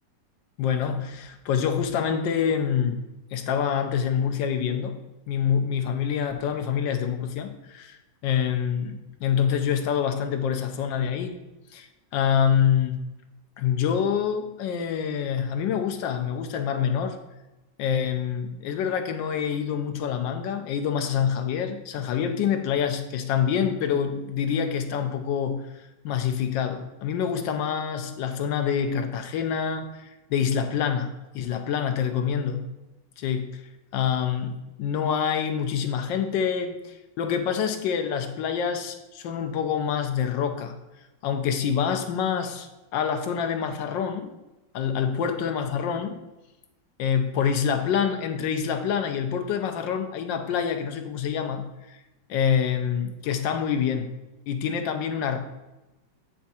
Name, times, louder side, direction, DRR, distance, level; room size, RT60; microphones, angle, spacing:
voice 1, 0.6-3.0 3.3-5.0 5.3-8.0 8.2-11.3 11.7-11.9 12.1-13.0 13.6-17.2 17.8-25.6 26.0-32.6 33.2-33.6 33.9-34.5 34.8-40.8 41.2-44.3 44.7-46.2 47.0-51.6 51.9-52.0 52.3-54.1 54.5-55.4, left 7 dB, 85° left, 6 dB, 1.4 m, -26 dB
8.6 x 3.5 x 4.2 m, 1.0 s
omnidirectional pair, 2.0 m